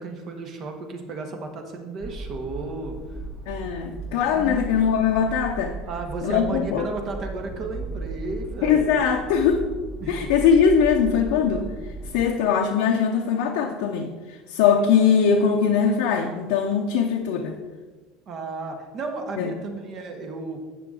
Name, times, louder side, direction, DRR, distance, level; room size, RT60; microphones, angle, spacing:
voice 1, 0.0-3.0 3.9-4.9 5.8-9.0 10.0-10.2 18.3-20.6, right 3 dB, 45° right, 4 dB, 1.4 m, -34 dB
sound 1, 2.0-12.3, right 2 dB, 10° right, 1.1 m, -36 dB
voice 2, 3.5-5.8 6.2-6.8 8.6-9.7 10.1-11.7 12.1-17.6 19.4-19.5, left 7 dB, 70° left, 1 dB, 0.7 m, -21 dB
8.4 x 6.7 x 3.8 m, 1.3 s
hypercardioid pair, 75°, 0 cm